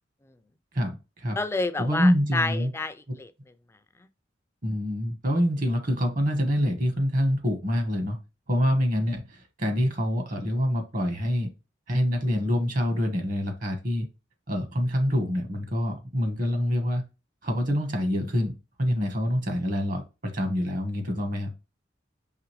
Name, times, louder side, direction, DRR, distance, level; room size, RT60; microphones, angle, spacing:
voice 1, 0.7-1.4 1.8-2.7 4.6-8.2 8.5-11.5 11.9-14.1 14.5-17.0 17.4-21.5, equal, 50° right, 1.2 m, -26 dB
voice 2, 1.4-3.3, left 2 dB, 15° left, 0.3 m, -29 dB
4.9 x 3.1 x 3.1 m
head